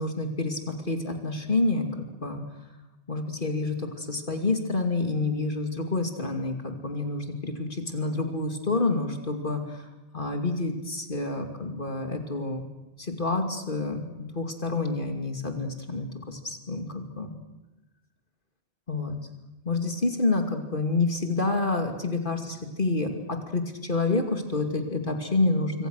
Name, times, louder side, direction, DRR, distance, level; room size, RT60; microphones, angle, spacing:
voice 1, 0.0-2.4 3.1-12.6 13.0-17.4 18.9-19.2 19.6-25.9, left 3 dB, 50° left, 5 dB, 2.8 m, -28 dB
26.5 x 25.5 x 6.5 m, 1.0 s
omnidirectional pair, 1.1 m